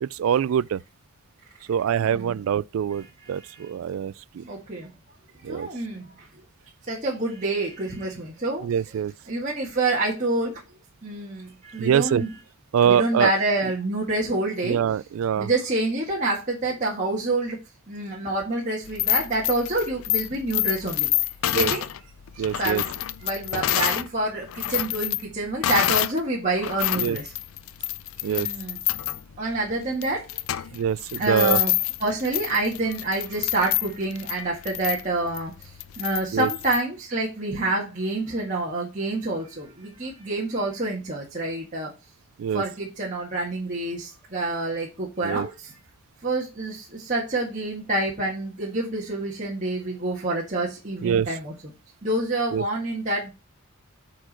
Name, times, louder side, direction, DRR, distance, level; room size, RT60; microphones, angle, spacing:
voice 1, 0.0-0.8 1.7-4.4 5.4-5.7 8.6-9.1 11.8-12.3 12.7-13.3 14.6-15.5 21.5-21.7 22.4-22.8 27.0-27.2 28.2-28.5 30.7-31.6 36.3-36.5 42.4-42.6 45.2-45.5 51.0-51.3 52.5-52.6, right 8 dB, 75° right, 0.3 m, -24 dB
voice 2, 2.0-2.3 4.5-4.9 5.5-6.0 6.9-8.6 9.3-10.5 11.0-11.5 11.7-12.3 12.8-14.8 15.4-17.6 17.9-21.1 21.5-21.8 22.6-22.8 23.2-24.4 24.7-27.2 28.3-28.8 29.4-30.2 31.2-31.7 32.0-35.5 36.0-41.9 42.5-45.5 46.2-46.8 47.1-51.5 52.0-53.3, right 2 dB, 35° right, 1.9 m, -27 dB
sound 1, 18.8-24.1 24.4-26.2 26.6-36.8, left 14 dB, 75° left, 0.4 m, -28 dB
8.9 x 4.6 x 4.3 m
head